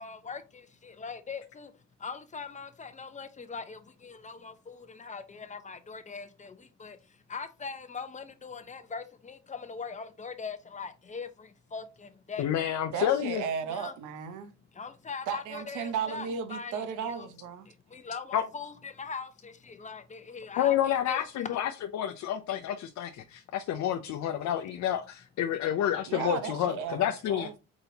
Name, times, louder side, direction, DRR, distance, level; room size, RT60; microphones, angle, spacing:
voice 1, 0.0-1.7 2.0-7.0 7.3-12.5 13.7-14.0 14.7-17.3 17.7-21.5, left 5 dB, 25° left, 0.7 m, -41 dB
voice 2, 12.4-13.4 18.3-18.4 20.6-27.5, left 10 dB, 70° left, 0.5 m, -29 dB
voice 3, 12.9-14.5 15.3-17.7 26.1-27.6, right 7 dB, 85° right, 0.8 m, -35 dB
4.1 x 4.0 x 2.8 m
cardioid pair, 90°, 30 cm